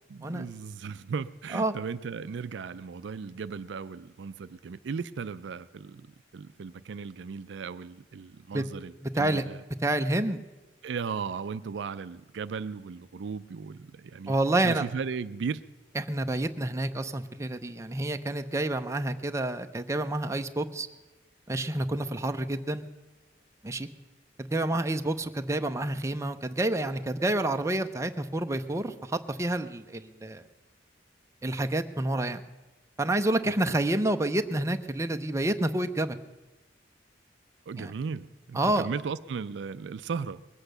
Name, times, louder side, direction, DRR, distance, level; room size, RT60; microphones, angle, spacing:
voice 1, 0.1-6.1 6.3-9.6 10.8-14.4 14.6-15.6 33.4-33.8 37.7-40.4, right 5 dB, 70° right, 14 dB, 0.4 m, -36 dB
voice 2, 9.0-9.4 9.8-10.4 14.3-14.9 16.0-20.9 21.5-22.9 23.6-23.9 24.4-30.4 31.4-32.4 33.0-36.2 37.8-37.9 38.5-38.9, right 1 dB, 15° right, 7 dB, 0.6 m, -28 dB
20.5 x 8.2 x 6.6 m, 1.1 s
head